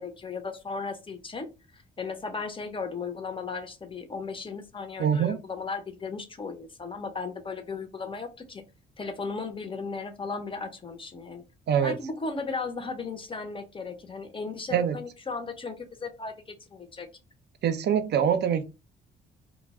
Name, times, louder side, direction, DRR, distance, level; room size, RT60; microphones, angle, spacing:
voice 1, 0.0-1.5 1.7-8.6 9.0-11.4 11.8-17.1, left 4 dB, 25° left, 0.6 m, -36 dB
voice 2, 5.0-5.4 11.7-12.0 14.7-15.0 17.6-18.6, right 8 dB, 60° right, 0.5 m, -24 dB
2.2 x 2.0 x 3.4 m
cardioid pair, 90°, 20 cm